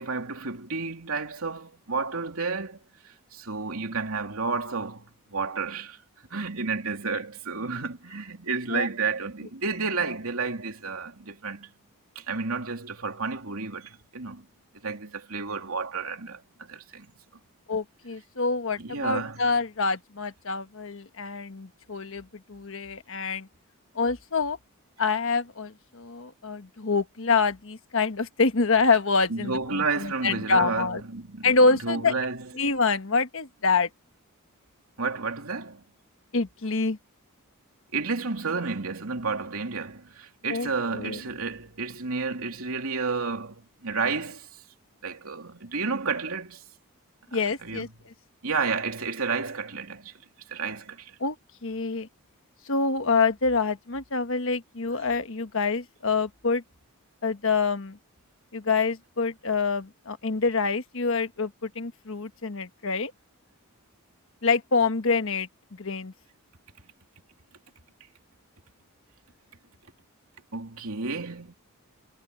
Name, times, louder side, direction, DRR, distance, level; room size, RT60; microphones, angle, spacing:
voice 1, 0.0-2.8 3.0-6.0 6.3-11.7 12.1-14.5 14.8-17.1 18.8-19.4 29.3-32.5 35.0-35.8 37.9-44.5 45.0-46.6 47.6-47.9 48.4-50.1 50.5-51.1 70.5-71.5, right 4 dB, 70° right, 3.1 m, -31 dB
voice 2, 17.7-23.5 23.9-24.6 25.0-31.0 31.4-32.1 32.5-33.9 36.3-37.0 40.5-41.2 47.3-47.9 51.2-51.3 51.6-52.1 52.7-56.6 57.2-58.0 58.5-63.1 64.4-66.1, left 4 dB, 60° left, 1.3 m, -26 dB
head